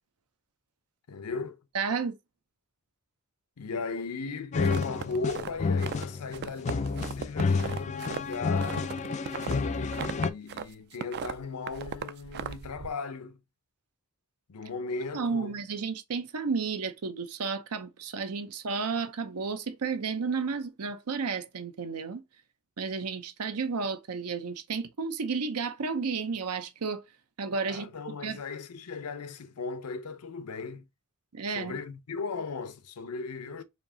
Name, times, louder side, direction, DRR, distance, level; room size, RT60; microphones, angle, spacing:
voice 1, 1.1-1.6 3.6-8.9 9.4-13.4 14.5-15.5 27.7-30.9 31.5-33.6, left 4 dB, 85° left, 0.6 m, -37 dB
voice 2, 1.7-2.2 15.1-22.2 22.8-27.0 27.4-27.9 28.2-28.4 31.3-31.8, right 5 dB, 85° right, 0.7 m, -32 dB
sound 1, 4.5-10.3, left 4 dB, 30° left, 0.3 m, -30 dB
sound 2, 4.6-6.1 6.3-10.7 10.9-12.9, right 7 dB, 45° right, 0.3 m, -38 dB
4.4 x 2.7 x 2.7 m
head